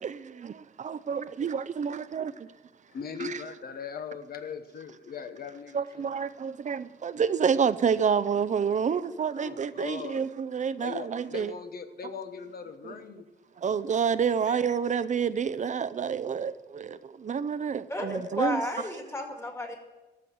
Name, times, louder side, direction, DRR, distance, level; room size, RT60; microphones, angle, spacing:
voice 1, 0.0-2.5 3.2-3.4 5.7-11.5 12.8-12.9 13.6-18.6, right 7 dB, 45° right, 0.5 m, -29 dB
voice 2, 2.9-6.1 9.3-10.3 10.8-13.3 14.5-14.6, left 6 dB, 60° left, 1.1 m, -40 dB
voice 3, 17.9-19.8, left 1 dB, 15° left, 2.1 m, -32 dB
13.5 x 6.4 x 9.3 m
wide cardioid pair, 145°, 17 cm